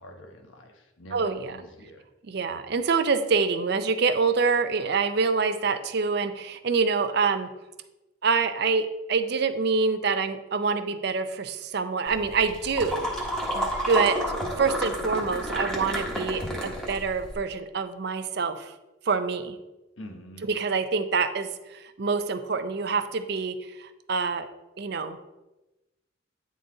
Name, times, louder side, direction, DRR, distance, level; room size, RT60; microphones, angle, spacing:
voice 1, 0.0-2.0 20.0-20.5, equal, 85° left, 4 dB, 1.0 m, -45 dB
voice 2, 1.1-1.6 2.3-7.5 8.2-14.2 14.6-18.7 19.1-19.6 20.4-24.5 24.8-25.2, right 4 dB, 55° right, 9 dB, 0.5 m, -26 dB
sound 1, 12.1-17.3, equal, 5° left, 1.0 m, -30 dB
9.2 x 3.9 x 3.8 m, 1.0 s
head